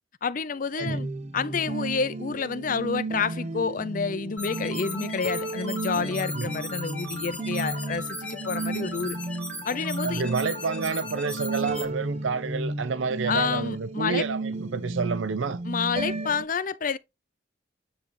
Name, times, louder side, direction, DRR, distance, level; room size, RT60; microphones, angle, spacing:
voice 1, 0.2-9.2 9.6-10.2 13.3-14.2 15.6-17.0, left 5 dB, 45° left, 0.6 m, -29 dB
sound 1, 0.8-16.5, right 2 dB, 35° right, 0.7 m, -34 dB
sound 2, 4.4-11.8, left 2 dB, 5° left, 1.7 m, -37 dB
voice 2, 10.0-15.6, right 5 dB, 90° right, 0.6 m, -29 dB
9.6 x 3.3 x 4.2 m
head